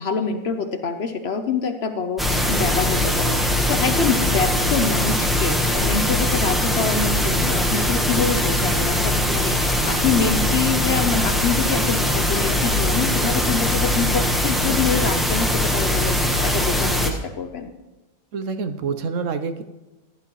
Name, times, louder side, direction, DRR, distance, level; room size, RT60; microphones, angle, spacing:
voice 1, 0.0-17.7, left 5 dB, 55° left, 7 dB, 0.9 m, -26 dB
sound 1, 2.2-17.1, left 1 dB, ahead, 0.9 m, -21 dB
voice 2, 18.3-19.6, right 5 dB, 65° right, 8 dB, 1.0 m, -27 dB
15.5 x 11.0 x 3.1 m, 1.1 s
omnidirectional pair, 1.5 m